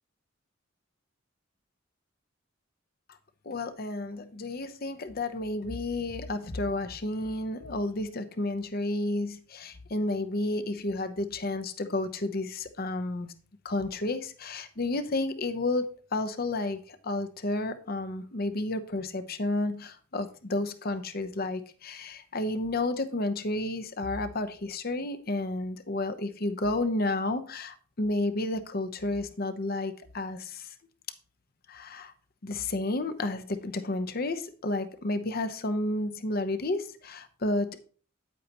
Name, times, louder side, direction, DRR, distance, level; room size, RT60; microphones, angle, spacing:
voice 1, 3.4-13.3 13.6-30.7 31.7-32.1 32.4-37.8, left 2 dB, 50° left, 9 dB, 0.8 m, -31 dB
9.4 x 8.4 x 3.0 m, 0.41 s
head